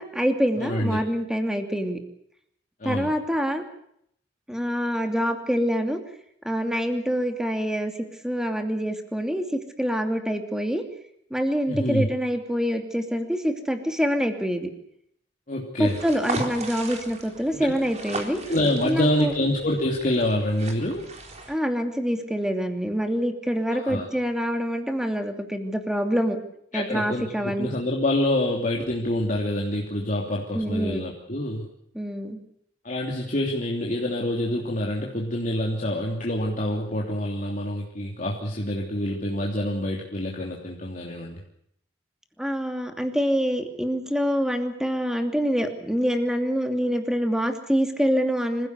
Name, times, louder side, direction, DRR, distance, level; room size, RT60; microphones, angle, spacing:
voice 1, 0.0-2.0 2.8-3.6 4.5-6.0 6.4-7.9 8.2-9.4 9.8-10.8 11.3-14.7 15.8-18.4 18.8-19.3 21.5-26.4 26.7-27.7 30.5-31.1 31.9-32.4 42.4-48.7, equal, 5° right, 5 dB, 2.7 m, -25 dB
voice 2, 0.6-1.0 2.8-3.1 11.7-12.1 15.5-16.0 17.5-17.8 18.5-21.1 23.7-24.1 26.7-31.7 32.8-41.3, left 1 dB, 45° left, -2 dB, 3.1 m, -26 dB
sound 1, 15.8-21.5, right 2 dB, 40° right, 4.1 m, -36 dB
26.0 x 16.5 x 8.3 m, 0.71 s
head